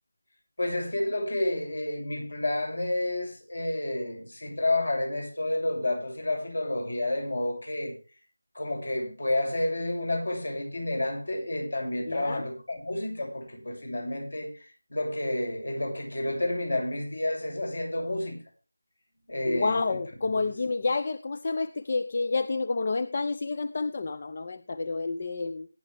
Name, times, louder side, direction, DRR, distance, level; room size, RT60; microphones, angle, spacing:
voice 1, 0.6-7.9 8.5-18.4 19.3-20.0 20.3-20.6, left 1 dB, 60° left, 7.2 m, -30 dB
voice 2, 12.1-12.4 19.5-25.7, left 3 dB, 30° left, 0.6 m, -29 dB
18.0 x 10.5 x 3.5 m
figure-of-eight pair, 165°, 0 cm